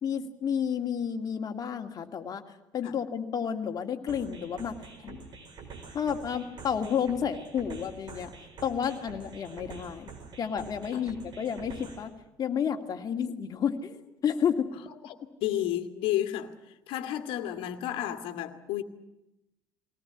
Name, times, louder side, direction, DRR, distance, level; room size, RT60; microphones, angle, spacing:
voice 1, 0.0-4.8 5.0-5.3 5.9-8.3 8.6-10.1 10.4-12.1 12.4-14.7, left 7 dB, 40° left, 4 dB, 2.3 m, -31 dB
sound 1, 4.1-12.1, right 5 dB, 50° right, 4.7 m, -47 dB
voice 2, 15.0-16.5 16.9-18.8, left 12 dB, 65° left, 8 dB, 2.0 m, -32 dB
21.0 x 18.5 x 9.9 m, 0.93 s
hypercardioid pair, 70°, 10 cm